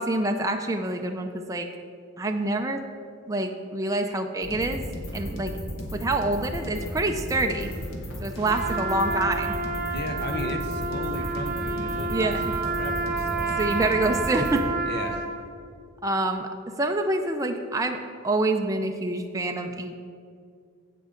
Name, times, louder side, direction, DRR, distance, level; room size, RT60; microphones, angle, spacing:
voice 1, 0.0-1.7 2.2-2.8 3.3-4.8 5.1-5.5 5.9-7.7 8.2-9.5 12.1-12.5 13.6-14.7 16.0-19.9, right 2 dB, 15° right, 4 dB, 0.4 m, -26 dB
sound 1, 4.4-14.6, equal, 75° left, 1.6 m, -35 dB
Trumpet, 8.4-15.5, right 4 dB, 45° right, 0.8 m, -29 dB
voice 2, 9.9-12.4 12.6-13.6 14.8-15.3, left 2 dB, 50° left, 6 dB, 0.7 m, -35 dB
15.5 x 5.4 x 3.7 m, 2.3 s
head